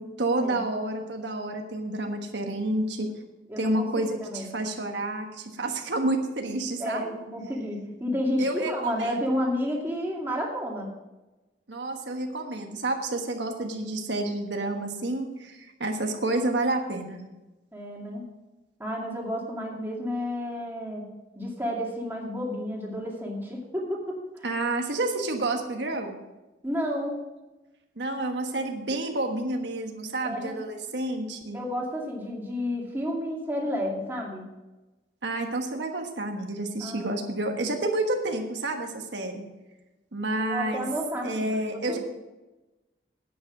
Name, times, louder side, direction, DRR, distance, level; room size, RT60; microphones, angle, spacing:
voice 1, 0.0-3.1 3.6-7.1 8.4-9.2 11.7-17.2 24.4-26.2 28.0-31.6 35.2-39.4 40.1-40.9 41.2-42.0, right 2 dB, 85° right, 3 dB, 1.4 m, -29 dB
voice 2, 3.5-4.5 6.8-10.9 17.7-18.2 18.8-21.0 21.3-24.5 26.6-27.2 30.2-30.6 31.5-34.4 36.8-37.3 40.4-42.0, equal, 10° right, -3 dB, 2.3 m, -31 dB
10.0 x 8.5 x 6.0 m, 1.1 s
head